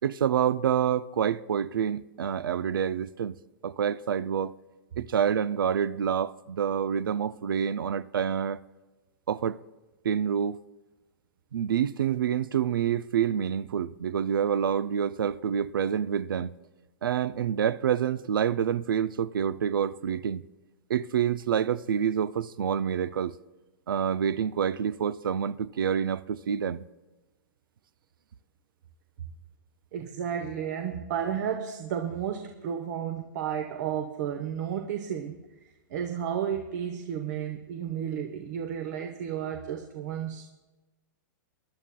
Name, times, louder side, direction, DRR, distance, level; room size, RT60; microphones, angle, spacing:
voice 1, 0.0-3.4 3.6-4.5 5.0-8.6 9.3-9.6 10.0-10.6 11.5-16.6 17.0-20.4 20.9-23.3 23.9-26.8, right 8 dB, 90° right, 0.4 m, -27 dB
voice 2, 29.9-35.4 35.9-40.5, right 8 dB, 55° right, 1.0 m, -32 dB
22.5 x 11.5 x 2.2 m
hypercardioid pair, 140°, 11 cm